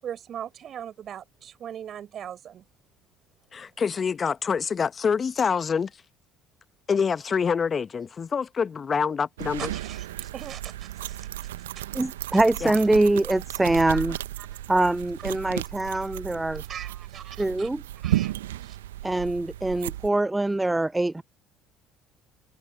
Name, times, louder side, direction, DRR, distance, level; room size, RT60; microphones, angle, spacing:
voice 1, 0.0-2.6 9.6-11.9 12.3-12.4 14.4-14.6 16.6-17.7 18.0-18.8, right 9 dB, 45° right, 6.1 m, -40 dB
voice 2, 3.5-5.9 6.9-9.7 12.6-12.7, left 6 dB, 35° left, 1.3 m, -26 dB
sound 1, 9.4-20.1, right 14 dB, 75° right, 1.2 m, -34 dB
voice 3, 11.9-14.2 14.7-16.6 17.4-17.8 19.0-21.2, right 2 dB, 10° right, 0.6 m, -24 dB
figure-of-eight pair, 55°, 0 cm